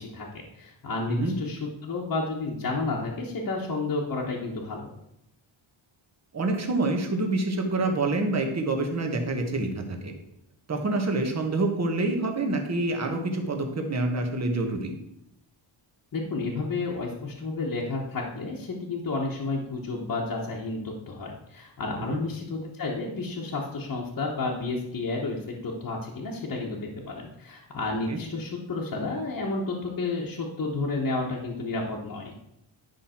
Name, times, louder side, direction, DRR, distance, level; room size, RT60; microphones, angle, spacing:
voice 1, 0.0-4.9 16.1-32.3, left 3 dB, 40° left, -3 dB, 1.3 m, -31 dB
voice 2, 6.3-10.1 10.7-14.9 22.1-22.2 28.1-28.2, right 2 dB, 30° right, 3 dB, 1.2 m, -27 dB
10.5 x 5.8 x 4.4 m, 0.82 s
wide cardioid pair, 175°, 50 cm